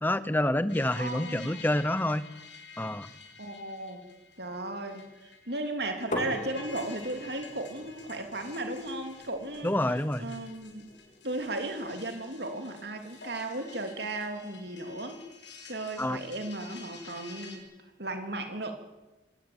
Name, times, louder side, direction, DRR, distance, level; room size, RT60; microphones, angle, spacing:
voice 1, 0.0-2.2 2.8-3.1 9.6-10.3 16.0-16.2, left 1 dB, 10° left, 14 dB, 0.9 m, -27 dB
sound 1, 0.7-17.6, left 4 dB, 70° left, 6.9 m, -50 dB
voice 2, 1.0-1.6 3.4-4.0 4.4-10.9 11.2-15.2 15.7-17.6 18.0-18.7, right 2 dB, 60° right, 5 dB, 3.2 m, -36 dB
sound 2, 6.1-11.8, left 1 dB, 40° left, 3.1 m, -42 dB
25.0 x 18.0 x 8.9 m, 1.1 s
head